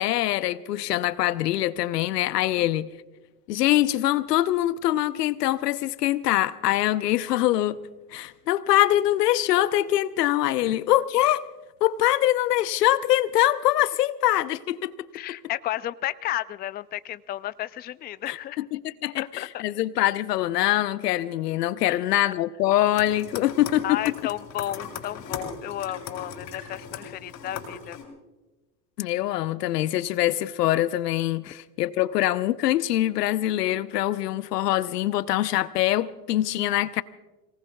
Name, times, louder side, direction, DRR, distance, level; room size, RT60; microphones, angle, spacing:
voice 1, 0.0-2.9 3.5-7.8 8.1-11.5 11.8-14.9 18.3-24.1 29.0-37.0, left 14 dB, 90° left, 0.8 m, -24 dB
voice 2, 15.1-18.6 19.2-19.6 21.9-22.2 23.8-28.0 31.5-31.6, left 13 dB, 20° left, 0.4 m, -33 dB
sound 1, 22.9-28.0, left 7 dB, 45° left, 5.3 m, -38 dB
29.5 x 19.0 x 2.3 m
hypercardioid pair, 90°, 47 cm